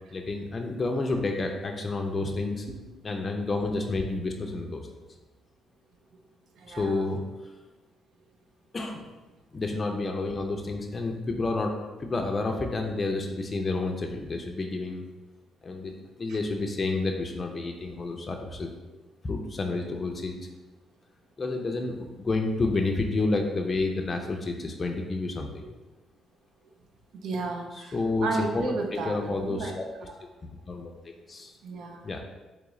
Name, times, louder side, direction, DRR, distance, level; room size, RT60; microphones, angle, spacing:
voice 1, 0.1-2.7 3.0-4.8 6.7-7.2 8.7-9.0 9.5-11.7 12.0-15.0 15.6-15.9 16.2-18.7 19.2-20.4 21.4-25.7 27.9-29.8 30.7-31.5 32.0-32.2, left 3 dB, 30° left, 2 dB, 0.4 m, -30 dB
voice 2, 6.6-7.1 16.3-16.4 25.6-25.7 27.1-28.0 28.2-30.1 31.6-32.0, right 3 dB, 75° right, 4 dB, 0.5 m, -33 dB
3.6 x 3.1 x 3.0 m, 1.1 s
cardioid pair, 90°, 0 cm